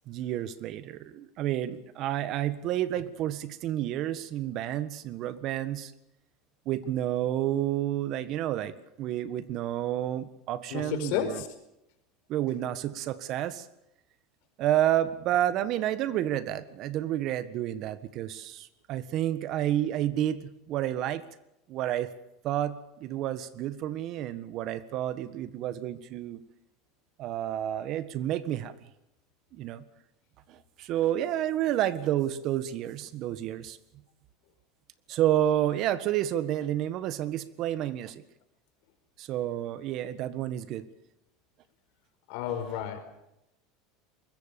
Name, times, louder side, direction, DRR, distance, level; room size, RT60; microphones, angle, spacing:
voice 1, 0.1-5.9 6.6-11.4 12.3-13.7 14.6-21.2 21.7-22.1 22.4-26.4 27.2-28.7 29.5-29.8 30.5-33.8 35.1-38.2 39.2-40.9 42.7-42.8, right 12 dB, 55° right, 14 dB, 1.5 m, -30 dB
voice 2, 10.7-11.5 42.3-43.0, left 9 dB, 70° left, 7 dB, 4.9 m, -31 dB
23.0 x 21.0 x 7.0 m, 0.87 s
supercardioid pair, 110°, 0 cm